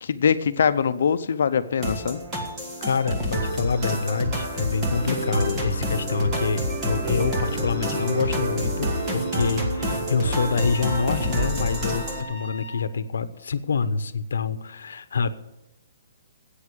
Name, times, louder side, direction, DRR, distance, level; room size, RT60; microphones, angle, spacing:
voice 1, 0.0-2.2, left 7 dB, 55° left, 12 dB, 0.7 m, -22 dB
sound 1, 1.8-12.2, equal, 15° right, 1.5 m, -28 dB
voice 2, 2.8-15.3, left 5 dB, 80° left, 13 dB, 0.9 m, -26 dB
sound 2, 5.0-10.8, right 2 dB, 55° right, 2.0 m, -32 dB
Trumpet, 10.5-12.9, right 1 dB, 5° left, 3.5 m, -40 dB
9.9 x 8.7 x 8.4 m, 0.94 s
hypercardioid pair, 180°, 0 cm